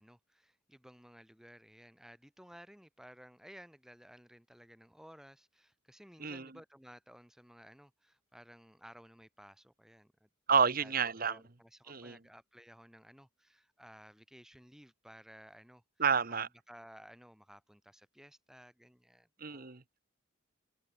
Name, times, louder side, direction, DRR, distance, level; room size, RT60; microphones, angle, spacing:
voice 1, 0.0-10.9 11.2-15.8 16.3-19.8, equal, ahead, 6.5 m, -56 dB
voice 2, 6.2-6.5 10.5-11.4 11.9-12.2 16.0-16.5 19.4-20.0, right 6 dB, 45° right, 1.2 m, -30 dB
head